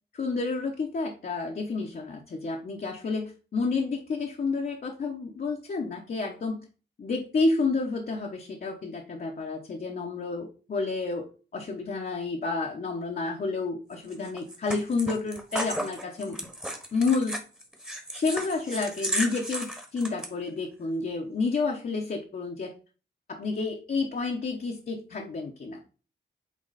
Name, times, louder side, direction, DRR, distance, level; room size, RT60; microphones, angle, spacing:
voice 1, 0.1-6.6 7.0-11.3 11.5-16.4 16.9-17.4 18.1-22.7 23.3-25.8, left 3 dB, 50° left, 0 dB, 1.0 m, -30 dB
sound 1, 14.1-20.3, right 1 dB, 5° right, 1.2 m, -34 dB
8.3 x 3.2 x 4.1 m, 0.36 s
cardioid pair, 85°, 18 cm